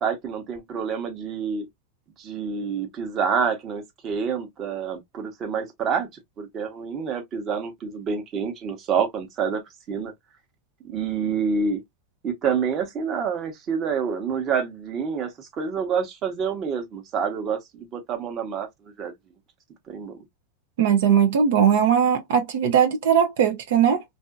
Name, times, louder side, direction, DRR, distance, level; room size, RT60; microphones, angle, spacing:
voice 1, 0.0-1.7 2.2-6.1 6.4-9.6 9.9-10.1 10.8-11.8 12.2-19.1 19.9-20.2, right 6 dB, 35° right, 1.0 m, -27 dB
voice 2, 20.8-24.0, right 8 dB, 75° right, 0.7 m, -19 dB
2.7 x 2.6 x 2.4 m
supercardioid pair, 125°, 0 cm